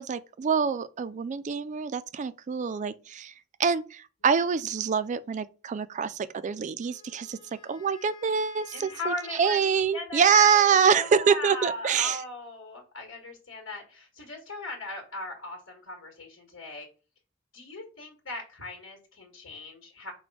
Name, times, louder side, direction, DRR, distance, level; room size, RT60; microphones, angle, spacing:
voice 1, 0.0-3.3 3.6-7.4 7.6-12.2, right 6 dB, 40° right, 0.3 m, -25 dB
Wind instrument woodwind instrument, 6.8-10.0, left 6 dB, 25° left, 1.3 m, -51 dB
voice 2, 8.7-16.9 17.5-20.1, left 2 dB, 80° left, 1.5 m, -38 dB
5.1 x 2.2 x 4.7 m
head